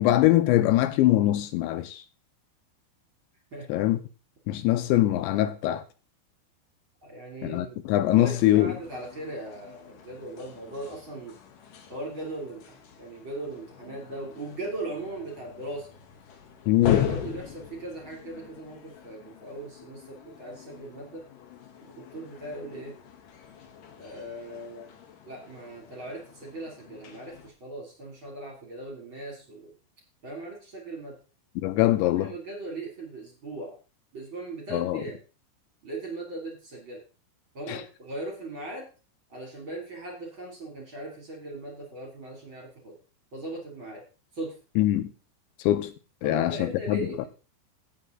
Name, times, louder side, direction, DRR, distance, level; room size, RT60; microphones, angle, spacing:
voice 1, 0.0-1.9 3.7-4.0 4.5-5.8 7.4-8.7 16.7-17.1 31.6-32.3 34.7-35.0 44.8-45.1 45.7-45.9 46.2-47.0, left 14 dB, 85° left, 3.0 m, -22 dB
voice 2, 7.0-7.8 8.2-11.3 11.9-15.9 16.9-21.2 21.8-22.9 24.0-24.9 25.3-29.7 30.2-31.1 32.1-33.8 34.1-35.2 35.8-37.0 37.5-38.9 39.3-42.9 43.3-44.0 44.3-44.5 46.2-47.3, right 2 dB, 30° right, 3.2 m, -39 dB
sound 1, 8.1-27.5, left 9 dB, 60° left, 2.5 m, -39 dB
17.0 x 6.7 x 3.9 m
omnidirectional pair, 5.3 m